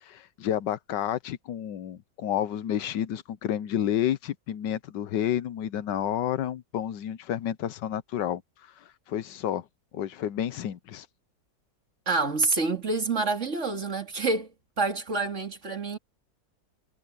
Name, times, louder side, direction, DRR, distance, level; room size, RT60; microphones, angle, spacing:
voice 1, 0.0-8.4 9.1-9.6 9.9-11.1, left 10 dB, 80° left, 1.4 m, -30 dB
voice 2, 12.1-14.5 14.8-16.0, right 3 dB, 40° right, 2.7 m, -27 dB
omnidirectional pair, 1.9 m